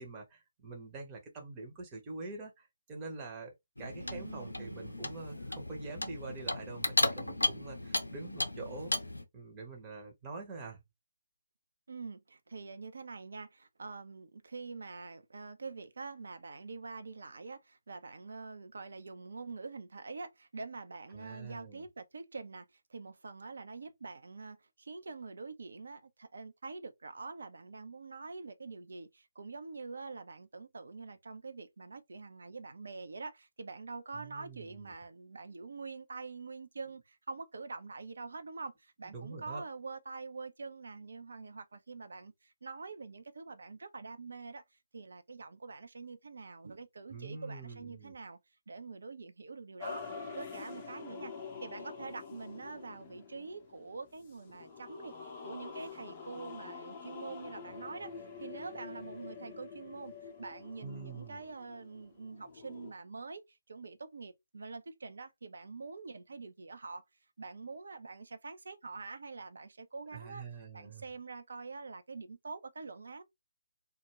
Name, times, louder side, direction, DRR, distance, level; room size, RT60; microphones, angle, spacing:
voice 1, 0.0-8.9 9.3-10.8 21.1-21.8 34.1-34.9 39.1-39.6 47.1-48.1 60.8-61.4 70.1-71.0, right 3 dB, 20° right, 0.7 m, -45 dB
Clock, 3.8-9.2, left 1 dB, 75° left, 0.5 m, -35 dB
voice 2, 4.0-5.1 11.9-48.4 48.7-50.0 50.3-51.3 51.6-58.1 58.4-67.0 67.4-70.4 70.7-73.2, right 4 dB, 55° right, 0.5 m, -45 dB
sound 1, 49.8-62.9, left 5 dB, 25° left, 0.5 m, -47 dB
2.3 x 2.1 x 2.9 m
figure-of-eight pair, 140°, 0 cm